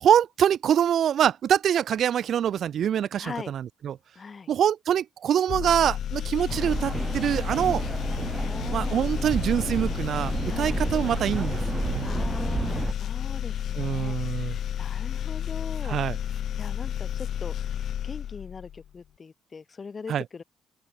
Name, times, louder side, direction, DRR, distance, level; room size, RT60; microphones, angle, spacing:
voice 1, 0.0-4.0 4.5-7.8 8.7-12.3 13.8-14.6 15.8-16.2 20.1-20.2, right 9 dB, 65° right, 0.6 m, -25 dB
voice 2, 3.2-3.5 4.2-4.5 8.4-9.1 10.5-10.7 12.0-16.0 16.6-17.7 18.0-20.4, left 5 dB, 35° left, 1.9 m, -41 dB
sound 1, 5.5-18.9, left 10 dB, 65° left, 1.4 m, -31 dB
sound 2, 6.5-12.9, right 4 dB, 30° right, 2.4 m, -31 dB
open air
cardioid pair, 90°, 0 cm